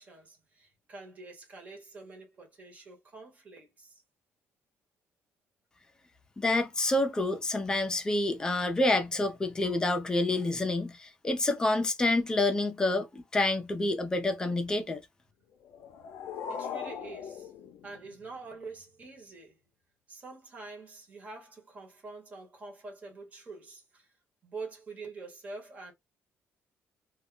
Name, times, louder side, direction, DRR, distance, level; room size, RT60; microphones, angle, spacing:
voice 1, 0.0-3.9 16.5-17.5 17.8-19.5 20.1-24.1 24.4-25.9, right 3 dB, 30° right, 0.9 m, -46 dB
voice 2, 6.4-15.0, left 2 dB, 15° left, 0.4 m, -28 dB
sound 1, 15.6-18.6, left 7 dB, 80° left, 0.5 m, -40 dB
2.2 x 2.1 x 3.6 m
cardioid pair, 180°, 5 cm